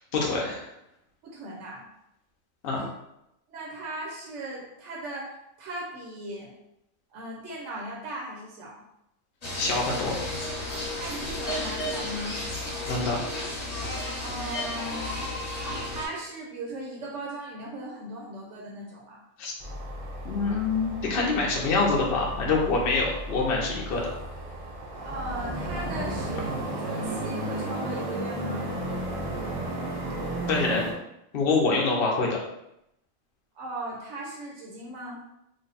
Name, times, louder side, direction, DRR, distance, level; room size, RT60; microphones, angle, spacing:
voice 1, 0.1-0.7 2.6-2.8 9.6-10.1 12.9-13.2 19.4-19.5 20.2-24.1 30.5-30.8 31.3-32.4, left 3 dB, 55° left, -2 dB, 0.8 m, -25 dB
voice 2, 1.2-1.9 2.8-2.9 3.5-5.3 5.6-6.5 7.1-8.8 10.9-12.4 14.2-15.2 15.9-19.2 25.0-28.6 33.5-35.2, right 1 dB, 65° right, -3 dB, 1.0 m, -38 dB
sound 1, 9.4-16.1, left 1 dB, 30° left, 1.2 m, -33 dB
sound 2, 19.6-30.9, right 1 dB, 30° right, 0.7 m, -34 dB
3.3 x 2.2 x 3.9 m, 0.83 s
omnidirectional pair, 1.4 m